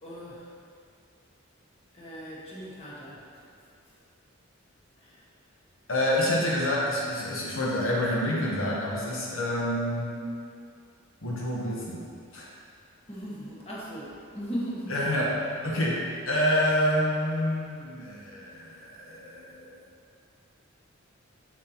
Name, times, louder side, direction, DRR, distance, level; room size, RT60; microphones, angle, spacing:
voice 1, 0.0-0.5 1.9-3.4 5.0-5.2 13.1-14.9, equal, 30° left, -7 dB, 1.5 m, -38 dB
voice 2, 5.9-10.1 11.2-12.0 12.3-12.5 14.9-19.8, left 1 dB, 75° left, -4 dB, 1.1 m, -28 dB
7.4 x 7.2 x 2.9 m, 2.4 s
head